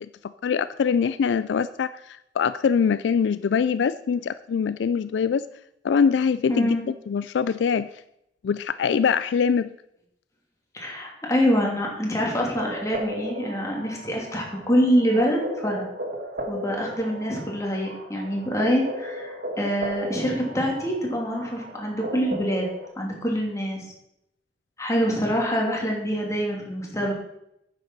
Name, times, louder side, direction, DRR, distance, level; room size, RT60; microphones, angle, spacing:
voice 1, 0.2-5.5 5.8-6.8 7.1-7.9 8.4-9.7, left 6 dB, 75° left, 14 dB, 0.3 m, -23 dB
voice 2, 6.5-6.8 10.7-15.9 16.5-22.7 23.0-23.8 24.8-27.1, equal, 20° left, -1 dB, 2.7 m, -25 dB
sound 1, 12.6-22.9, equal, 55° right, 1.5 m, -35 dB
9.4 x 6.7 x 6.1 m, 0.80 s
head